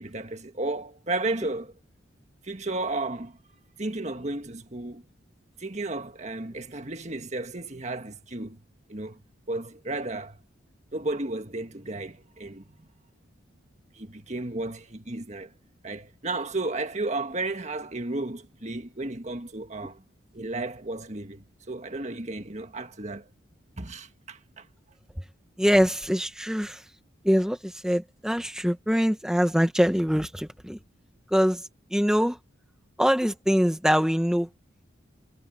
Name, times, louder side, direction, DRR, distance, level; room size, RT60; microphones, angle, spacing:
voice 1, 0.0-1.7 2.4-3.4 3.8-5.0 5.6-8.6 8.9-9.2 9.5-10.4 10.9-12.9 13.9-15.5 15.8-20.0 20.3-23.3 23.8-24.7, right 2 dB, 35° right, 1.7 m, -33 dB
voice 2, 25.6-26.8 27.2-30.8 31.3-31.6 31.9-32.4 33.0-34.5, equal, 5° right, 1.2 m, -23 dB
head